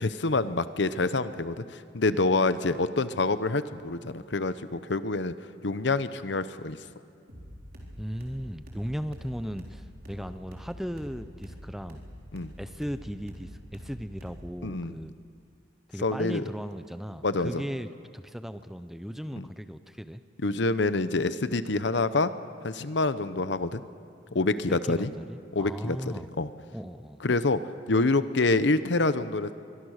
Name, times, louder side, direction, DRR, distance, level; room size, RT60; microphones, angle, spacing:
voice 1, 0.0-5.3 5.6-6.8 12.3-12.5 14.6-15.0 16.0-16.4 17.2-17.6 19.4-19.5 20.4-22.3 22.6-23.8 24.3-25.1 25.5-26.0 26.4-26.5 27.2-27.6 27.9-29.5, left 3 dB, 65° left, 13 dB, 0.8 m, -26 dB
sound 1, 7.3-14.7, equal, 50° right, 3.9 m, -46 dB
voice 2, 8.0-12.0 12.6-15.1 15.9-20.2 24.7-26.3 26.7-27.2, equal, ahead, 11 dB, 0.6 m, -37 dB
24.0 x 23.0 x 6.5 m, 2.3 s
head